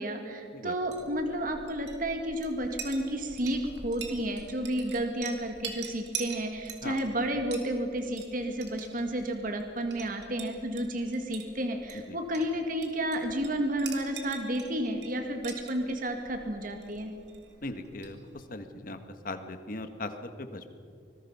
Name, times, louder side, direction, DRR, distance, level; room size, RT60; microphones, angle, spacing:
voice 1, 0.0-17.1, right 1 dB, 50° right, 5 dB, 2.1 m, -31 dB
Chink clink, 0.7-18.6, right 6 dB, 70° right, 2.6 m, -45 dB
voice 2, 17.6-19.0 19.2-20.7, left 2 dB, 50° left, 8 dB, 1.6 m, -39 dB
25.5 x 20.5 x 5.6 m, 2.4 s
head